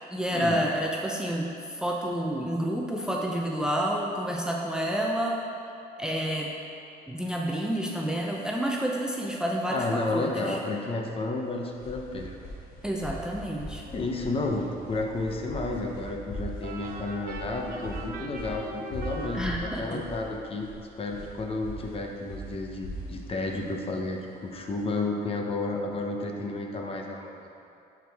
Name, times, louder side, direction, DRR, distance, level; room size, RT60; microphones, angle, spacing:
voice 1, 0.1-5.4 6.0-6.5 7.1-10.6 12.8-13.8 19.3-20.0, equal, 5° right, -1 dB, 0.6 m, -29 dB
voice 2, 9.7-12.4 13.9-20.7 21.0-27.3, left 2 dB, 35° left, 1 dB, 0.8 m, -31 dB
sound 1, 11.5-24.7, equal, 60° left, 1.6 m, -41 dB
sound 2, 16.6-20.1, right 2 dB, 60° right, 0.8 m, -41 dB
10.5 x 4.8 x 3.5 m, 2.7 s
cardioid pair, 110°, 17 cm